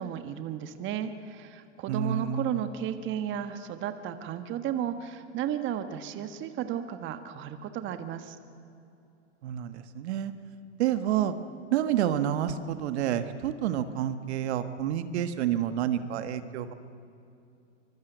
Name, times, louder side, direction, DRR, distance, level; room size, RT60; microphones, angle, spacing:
voice 1, 0.0-8.4, right 9 dB, 30° right, 9 dB, 1.4 m, -34 dB
voice 2, 1.9-2.6 9.4-10.3 10.8-11.3 11.7-16.7, right 10 dB, 60° right, 10 dB, 1.5 m, -29 dB
25.0 x 22.5 x 8.0 m, 2.6 s
hypercardioid pair, 125°, 37 cm